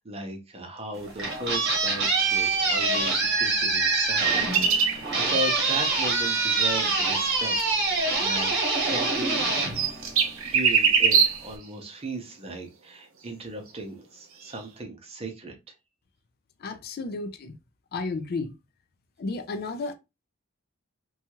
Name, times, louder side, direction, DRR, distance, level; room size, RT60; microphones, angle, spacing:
voice 1, 0.0-7.6 7.9-8.6 8.9-9.4 10.4-15.5, right 1 dB, 30° right, 0.7 m, -36 dB
sound 1, 0.9-10.6, right 3 dB, 55° right, 1.0 m, -25 dB
sound 2, 3.2-5.1 9.3-11.5 14.5-14.6, right 6 dB, 80° right, 0.7 m, -23 dB
voice 2, 16.6-17.6 17.9-18.5 19.2-19.9, left 3 dB, 50° left, 0.4 m, -32 dB
2.8 x 2.3 x 2.8 m
head